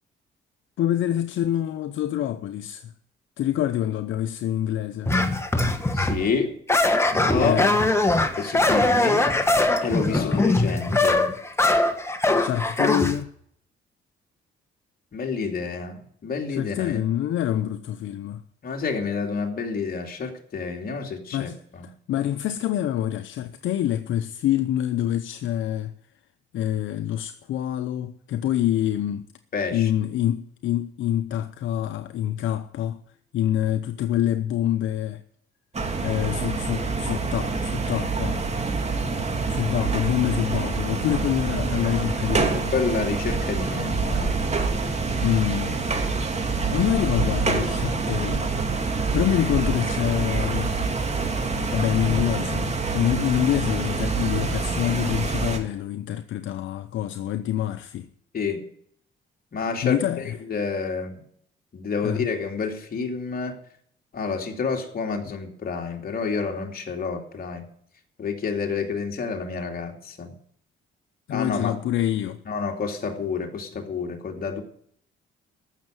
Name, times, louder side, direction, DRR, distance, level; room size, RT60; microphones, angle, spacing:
voice 1, 0.8-2.9 3.4-5.2 7.4-7.8 10.1-10.6 12.4-13.3 16.5-18.4 21.3-21.6 21.8-25.9 26.5-29.3 29.7-33.0 33.3-35.2 36.0-38.4 39.5-42.7 45.2-45.8 46.7-48.5 49.1-50.7 51.7-58.1 59.8-60.3 62.0-62.3 71.3-72.4, left 11 dB, 75° left, 0.8 m, -26 dB
sound 1, 5.1-6.3 6.7-13.2, left 2 dB, 15° left, 1.5 m, -21 dB
voice 2, 5.9-6.6 7.1-7.6 8.4-9.3 9.8-11.3 15.1-17.0 18.6-21.9 29.5-29.9 42.7-44.4 58.3-58.6 59.5-60.0 60.5-61.2 61.7-63.6 64.1-67.6 68.2-70.3 71.3-71.8 72.5-74.6, left 5 dB, 50° left, 2.8 m, -29 dB
sound 2, 35.7-55.6, right 4 dB, 35° right, 2.6 m, -26 dB
14.5 x 6.6 x 9.1 m
cardioid pair, 90°, 20 cm